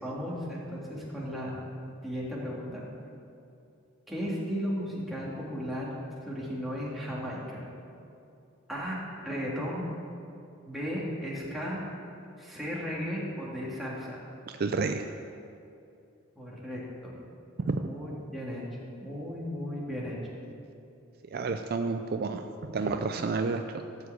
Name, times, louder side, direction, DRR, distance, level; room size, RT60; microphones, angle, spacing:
voice 1, 0.0-1.5 2.0-2.8 4.1-5.9 6.3-7.6 8.7-9.9 10.6-11.8 12.4-14.2 16.4-17.2 17.9-18.7 19.0-20.2, equal, ahead, -6 dB, 2.3 m, -35 dB
voice 2, 14.6-15.1 17.6-17.9 21.3-23.6, right 4 dB, 50° right, 7 dB, 0.4 m, -30 dB
14.0 x 4.9 x 8.1 m, 2.7 s
head